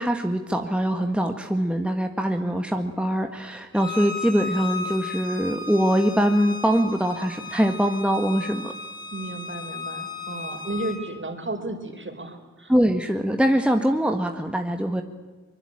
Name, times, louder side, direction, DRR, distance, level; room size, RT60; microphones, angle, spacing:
voice 1, 0.0-8.7 12.7-15.0, equal, 5° right, 5 dB, 1.7 m, -23 dB
Bowed string instrument, 3.7-11.0, left 4 dB, 15° left, 5.4 m, -35 dB
voice 2, 9.1-12.7, right 2 dB, 40° right, 5 dB, 4.6 m, -33 dB
23.5 x 21.5 x 8.9 m, 1.3 s
cardioid pair, 45°, 29 cm